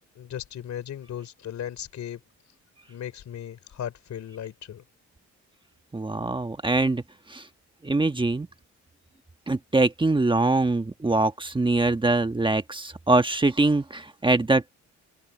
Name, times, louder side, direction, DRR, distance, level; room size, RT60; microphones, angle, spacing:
voice 1, 0.2-2.2 2.9-4.8, left 10 dB, 65° left, 3.7 m, -36 dB
voice 2, 5.9-7.0 7.3-7.4 7.8-8.5 9.5-14.7, right 2 dB, 15° right, 1.3 m, -23 dB
cardioid pair, 90°, 30 cm